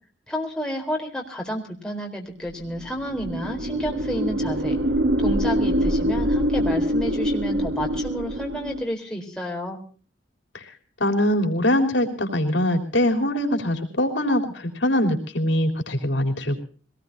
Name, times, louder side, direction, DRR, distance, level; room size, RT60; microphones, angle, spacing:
voice 1, 0.3-4.8 5.2-9.8, equal, 5° left, -1 dB, 4.2 m, -30 dB
sound 1, 2.8-8.9, equal, 65° right, 1.3 m, -24 dB
voice 2, 11.0-16.6, left 1 dB, 80° left, 3 dB, 3.7 m, -22 dB
24.0 x 19.0 x 2.8 m, 0.41 s
head